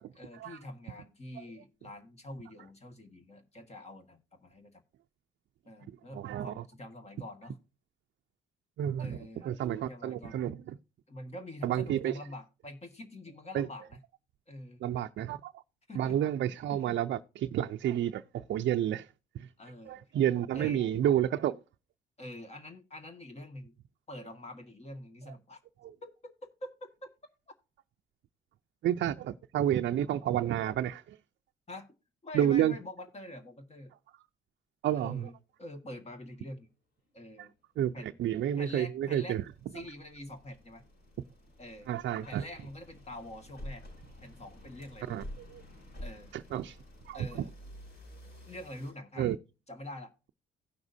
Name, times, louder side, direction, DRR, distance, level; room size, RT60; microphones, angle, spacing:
voice 1, 0.2-4.8 5.7-7.6 9.0-10.6 11.1-14.0 14.5-14.8 15.9-16.2 19.6-20.0 20.5-20.9 22.2-23.7 24.1-25.6 26.0-26.3 26.6-27.1 31.7-31.9 32.2-33.9 34.9-35.3 35.6-36.7 37.1-37.5 37.9-38.2 38.6-39.4 39.7-40.8 41.6-41.9 42.3-43.8 44.2-45.2 46.0-46.3 47.1-47.5 48.5-49.3 49.7-50.1, left 1 dB, 30° left, 1.8 m, -45 dB
voice 2, 6.1-6.6 8.8-10.7 11.6-12.2 13.5-13.7 14.8-15.5 15.9-19.1 19.3-19.5 19.9-21.6 25.8-25.9 28.8-31.2 32.3-32.7 34.8-35.3 37.4-37.5 37.8-39.4 41.9-42.4 45.1-45.6 46.3-46.8 47.1-47.3 49.2-49.4, right 11 dB, 65° right, 0.5 m, -30 dB
sound 1, 38.0-48.9, left 1 dB, 55° left, 6.0 m, -50 dB
17.0 x 6.0 x 2.7 m
cardioid pair, 90°, 20 cm